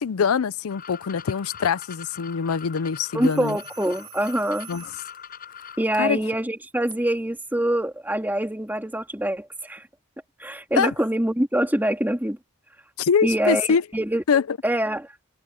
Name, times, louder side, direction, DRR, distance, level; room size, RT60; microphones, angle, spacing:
voice 1, 0.0-3.6 4.7-4.8 6.0-6.2 10.8-10.9 13.0-13.8 14.3-14.6, left 6 dB, 80° left, 0.5 m, -23 dB
sound 1, 0.7-5.8, left 8 dB, 40° left, 7.1 m, -42 dB
voice 2, 3.1-4.7 5.8-9.9 10.4-12.4 13.2-14.2 14.6-15.2, right 1 dB, 10° right, 2.9 m, -25 dB
sound 2, 3.2-5.2 7.6-7.8, right 14 dB, 75° right, 6.8 m, -46 dB
head